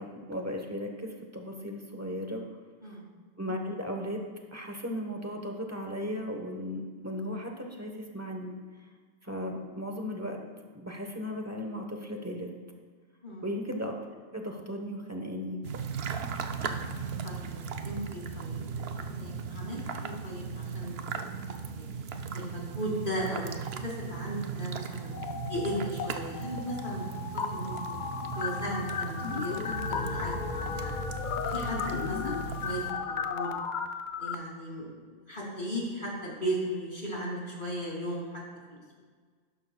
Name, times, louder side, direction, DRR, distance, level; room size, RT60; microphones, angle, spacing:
voice 1, 0.0-2.4 2.8-3.0 3.4-4.2 4.5-8.5 9.2-10.4 10.7-12.5 13.4-13.9 14.3-15.6, equal, 15° right, 2 dB, 1.0 m, -36 dB
voice 2, 2.8-3.1 13.2-13.5 16.6-16.9 17.2-18.6 18.9-21.8 22.3-25.1 25.5-27.0 27.3-27.9 28.4-31.0 31.5-33.5 34.2-38.4 38.7-39.0, equal, 40° left, -3 dB, 2.6 m, -37 dB
sound 1, 15.6-32.9, right 6 dB, 60° right, 0.8 m, -38 dB
sound 2, 25.1-26.1 26.3-34.3, left 6 dB, 60° left, 0.5 m, -35 dB
sound 3, 29.7-33.8, left 4 dB, 40° right, 1.9 m, -44 dB
11.5 x 11.5 x 2.3 m, 1.5 s
omnidirectional pair, 1.3 m